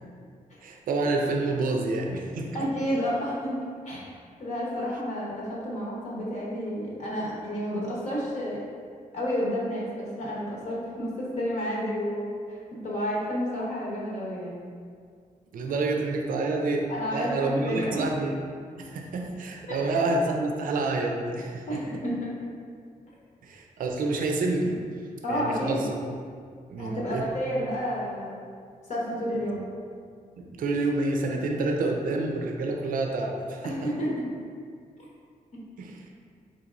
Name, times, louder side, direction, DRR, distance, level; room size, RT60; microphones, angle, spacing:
voice 1, 0.6-2.5 15.5-16.9 17.1-21.8 23.4-24.8 25.3-25.9 26.7-27.3 30.4-33.9 35.8-36.0, right 2 dB, 75° right, 1 dB, 0.4 m, -28 dB
voice 2, 2.5-3.6 3.8-4.1 4.4-8.6 9.1-12.6 12.8-14.6 16.9-18.1 19.7-19.9 21.7-22.3 25.2-25.8 26.8-28.4 28.9-29.6 33.6-34.1, equal, 55° left, -5 dB, 0.8 m, -30 dB
4.0 x 2.9 x 2.4 m, 2.1 s
cardioid pair, 110°, 15 cm